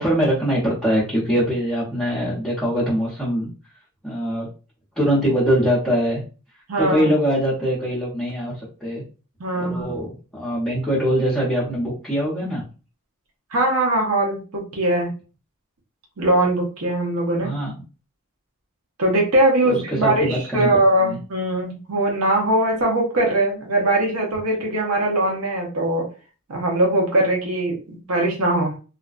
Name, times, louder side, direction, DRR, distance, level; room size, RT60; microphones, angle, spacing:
voice 1, 0.0-3.5 4.0-4.5 5.0-6.2 6.8-9.0 9.5-12.6 17.4-17.7 19.6-20.7 21.0-21.2, equal, 5° left, -8 dB, 0.7 m, -22 dB
voice 2, 6.7-7.1 9.4-9.9 13.5-15.1 16.2-17.5 19.0-26.1 26.5-28.7, right 1 dB, 90° right, -1 dB, 0.7 m, -21 dB
2.4 x 2.1 x 2.3 m, 0.35 s
head